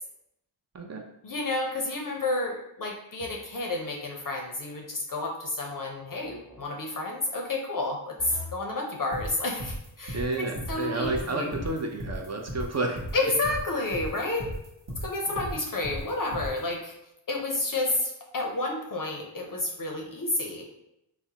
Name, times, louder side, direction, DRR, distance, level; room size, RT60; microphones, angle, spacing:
voice 1, 1.2-11.5 13.1-14.5 15.0-16.9 17.3-20.7, left 2 dB, 45° left, 0 dB, 0.5 m, -30 dB
sound 1, 3.2-3.7 6.2-6.7 8.2-8.7 11.2-11.9, left 2 dB, 10° right, 1.0 m, -44 dB
sound 2, 9.1-16.6, equal, 60° right, 1.0 m, -36 dB
voice 2, 10.1-13.0 15.3-15.6, right 2 dB, 35° right, 2 dB, 0.5 m, -31 dB
4.7 x 2.1 x 2.8 m, 0.83 s
wide cardioid pair, 115°, 46 cm